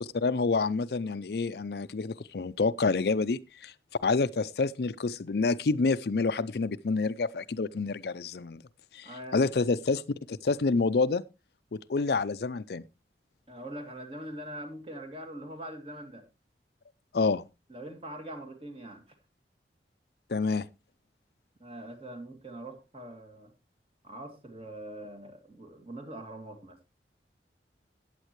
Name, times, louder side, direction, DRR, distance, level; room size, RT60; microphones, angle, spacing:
voice 1, 0.0-3.7 4.0-8.6 8.9-10.0 10.3-11.2 11.7-12.8 17.1-17.4 20.3-20.7, left 4 dB, 65° left, 0.5 m, -28 dB
voice 2, 9.0-9.6 13.5-16.2 17.7-19.0 21.6-23.5 24.0-26.8, right 1 dB, 35° right, 2.4 m, -43 dB
14.5 x 9.2 x 3.1 m
head